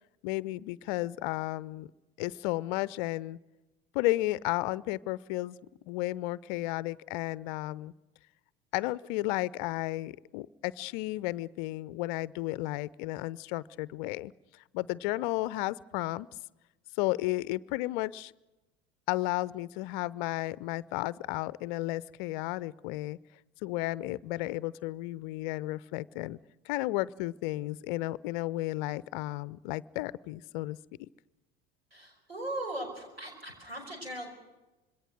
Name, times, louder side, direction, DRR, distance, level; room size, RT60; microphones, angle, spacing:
voice 1, 0.2-1.9 2.2-3.4 3.9-5.6 5.9-7.9 8.7-16.3 17.0-18.3 19.1-23.2 23.6-26.4 26.6-31.1, left 18 dB, 50° left, 21 dB, 0.7 m, -33 dB
voice 2, 31.9-34.3, right 1 dB, 85° right, 3 dB, 5.5 m, -38 dB
26.0 x 21.5 x 6.4 m, 1.1 s
figure-of-eight pair, 65°, 30 cm